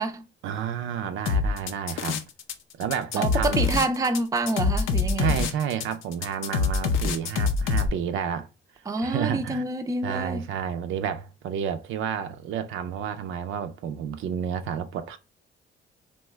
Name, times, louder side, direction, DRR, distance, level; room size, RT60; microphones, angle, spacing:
voice 1, 0.4-2.2 2.8-3.7 5.2-8.5 9.0-9.7 10.0-15.2, right 8 dB, 80° right, 0.5 m, -30 dB
sound 1, 1.3-2.5 2.8-7.9, left 4 dB, 85° left, 0.5 m, -25 dB
voice 2, 3.2-5.4 8.9-10.5, right 3 dB, 15° right, 0.4 m, -27 dB
2.9 x 2.2 x 3.3 m
cardioid pair, 90°, 20 cm